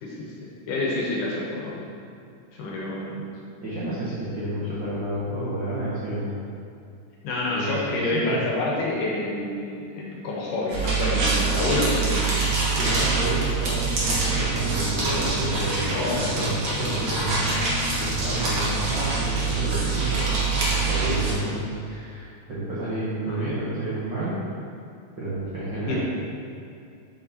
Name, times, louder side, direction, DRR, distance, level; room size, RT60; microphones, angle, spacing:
voice 1, 0.0-1.9 2.5-3.3 7.2-12.4 15.9-16.4 23.3-23.5 25.8-26.0, left 2 dB, 75° left, -4 dB, 2.4 m, -28 dB
voice 2, 3.6-6.4 7.5-7.7 8.1-8.4 12.7-17.6 18.0-20.3 20.7-24.4 25.2-26.0, right 1 dB, 80° right, -10 dB, 1.0 m, -30 dB
sound 1, 10.7-21.3, right 3 dB, 55° right, 1.6 m, -25 dB
7.1 x 6.4 x 2.8 m, 2.5 s
omnidirectional pair, 3.9 m